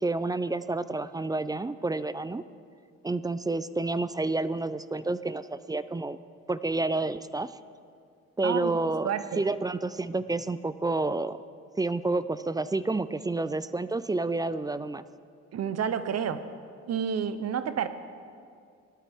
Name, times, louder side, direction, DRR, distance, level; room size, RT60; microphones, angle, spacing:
voice 1, 0.0-2.4 3.0-6.2 6.5-7.5 8.4-11.4 11.8-15.0, right 2 dB, 15° right, 14 dB, 0.3 m, -29 dB
voice 2, 9.0-9.4 15.5-16.4 16.9-17.9, right 8 dB, 55° right, 12 dB, 0.8 m, -29 dB
18.5 x 12.5 x 3.6 m, 2.3 s
cardioid pair, 90°, 30 cm